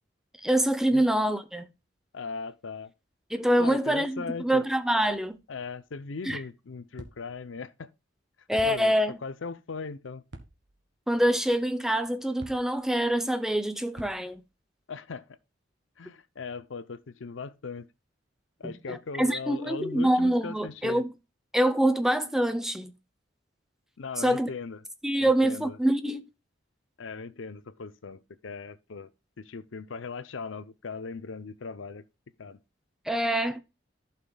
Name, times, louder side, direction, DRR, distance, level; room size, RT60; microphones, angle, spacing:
voice 1, 0.4-1.6 3.3-5.4 6.2-6.4 8.5-9.2 11.1-14.4 18.6-21.1 21.5-22.9 24.2-24.5 25.0-26.2 33.1-33.6, right 1 dB, ahead, 0.6 m, -25 dB
voice 2, 2.1-2.9 3.6-4.6 5.5-7.9 8.6-8.9 9.2-10.2 14.9-15.3 16.0-17.9 18.6-21.0 24.0-24.8 25.2-25.8 27.0-29.1 29.4-32.0 32.4-32.6, left 4 dB, 85° left, 0.6 m, -38 dB
sound 1, 5.0-5.6 7.0-7.6 8.6-9.2 10.3-10.9 12.4-13.0 14.0-14.6, right 1 dB, 65° right, 1.6 m, -48 dB
14.5 x 5.8 x 2.3 m
head